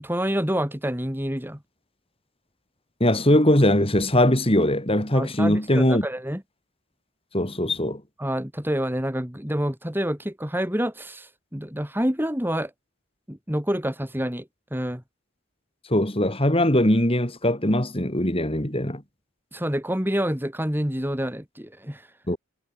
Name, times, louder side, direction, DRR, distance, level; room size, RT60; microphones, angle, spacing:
voice 1, 0.0-1.6 5.1-6.4 8.2-12.7 13.3-15.0 19.5-22.1, equal, 10° right, 3.2 m, -27 dB
voice 2, 3.0-6.1 7.3-8.0 15.9-19.0 22.3-22.4, left 1 dB, 25° left, 4.0 m, -21 dB
head